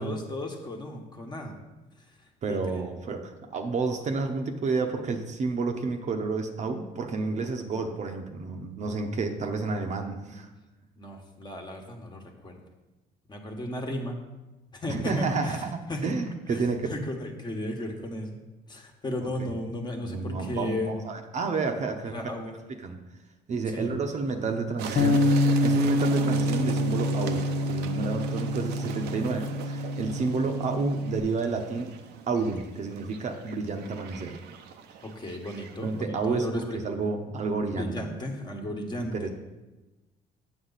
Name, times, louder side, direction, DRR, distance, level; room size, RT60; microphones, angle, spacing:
voice 1, 0.0-1.5 2.5-2.8 10.2-10.3 11.0-12.5 13.3-14.2 14.7-15.6 15.9-16.1 16.5-18.3 18.7-21.0 22.1-22.5 23.7-23.9 35.0-36.8 37.7-39.3, left 1 dB, 25° left, 2 dB, 1.3 m, -35 dB
voice 2, 2.4-10.5 14.9-16.9 19.2-19.5 20.0-22.1 22.8-23.0 23.5-25.3 25.6-31.9 32.3-34.4 35.8-38.1 38.9-39.3, right 4 dB, 45° right, 4 dB, 0.8 m, -30 dB
sound 1, 24.8-36.0, right 7 dB, 75° right, 0.7 m, -40 dB
Bass guitar, 25.0-31.2, left 1 dB, 55° left, 0.7 m, -26 dB
8.1 x 7.0 x 4.0 m, 1.1 s
cardioid pair, 110°, 17 cm